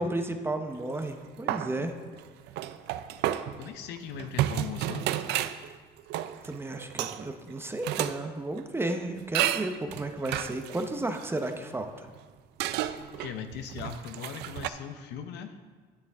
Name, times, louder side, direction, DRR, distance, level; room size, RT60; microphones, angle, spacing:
voice 1, 0.0-2.0 6.4-12.1, right 2 dB, 15° right, 6 dB, 0.7 m, -33 dB
sound 1, 0.8-1.2 1.5-8.2 8.6-8.7 9.3-12.2 12.6-14.7, right 12 dB, 80° right, 0.4 m, -32 dB
voice 2, 3.6-5.1 13.2-15.6, left 7 dB, 85° left, 8 dB, 0.8 m, -39 dB
9.7 x 8.4 x 3.5 m, 1.5 s
cardioid pair, 110°, 17 cm